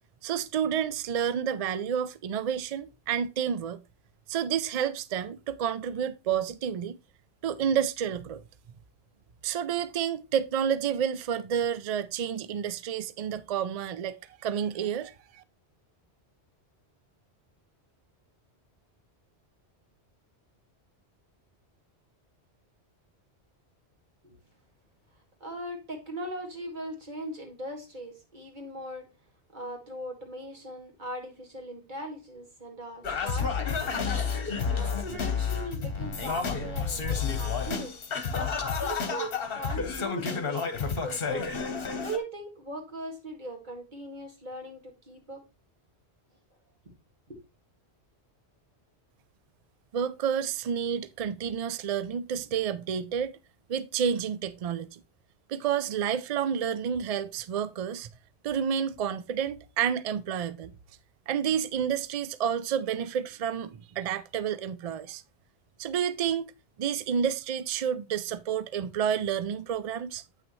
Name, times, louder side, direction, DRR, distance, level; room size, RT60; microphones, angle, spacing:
voice 1, 0.2-3.8 4.3-7.0 7.4-8.4 9.4-15.4 49.9-53.3 53.7-55.0 55.5-58.1 58.4-60.7 61.3-65.2 65.8-66.5 66.8-70.2, right 8 dB, 65° right, 0.3 m, -30 dB
voice 2, 25.4-29.0 29.5-34.0 34.6-37.9 38.8-41.5 42.0-45.4 47.3-47.4, right 1 dB, 45° right, 2.2 m, -39 dB
Singing, 33.0-42.2, left 5 dB, 60° left, 1.2 m, -30 dB
8.6 x 6.1 x 3.1 m
omnidirectional pair, 1.1 m